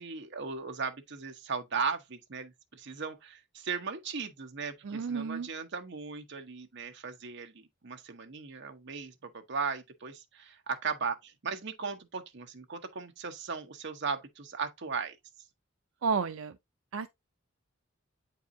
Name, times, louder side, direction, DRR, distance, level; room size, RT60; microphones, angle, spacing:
voice 1, 0.0-7.5 7.8-15.2, right 5 dB, 60° right, 1.0 m, -37 dB
voice 2, 4.8-5.5 16.0-16.5 16.9-17.1, right 5 dB, 90° right, 0.5 m, -31 dB
8.2 x 4.7 x 2.7 m
head